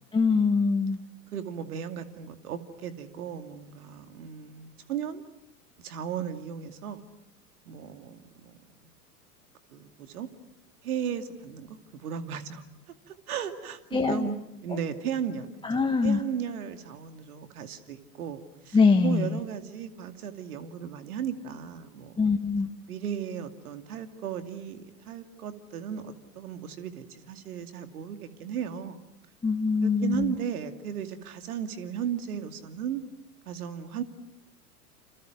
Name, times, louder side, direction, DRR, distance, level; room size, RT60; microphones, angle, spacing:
voice 1, 0.1-1.0 13.9-14.3 14.7-14.8 15.6-16.2 18.7-19.4 22.2-22.7 29.4-30.3, left 4 dB, 10° left, 3 dB, 1.4 m, -23 dB
voice 2, 1.3-5.2 5.8-7.1 7.7-8.5 9.7-10.3 10.8-12.6 13.1-14.4 14.6-22.1 22.9-29.0 29.8-33.0 33.5-34.0, right 8 dB, 65° right, 8 dB, 2.5 m, -35 dB
29.5 x 27.5 x 6.5 m, 0.83 s
figure-of-eight pair, 90°, 47 cm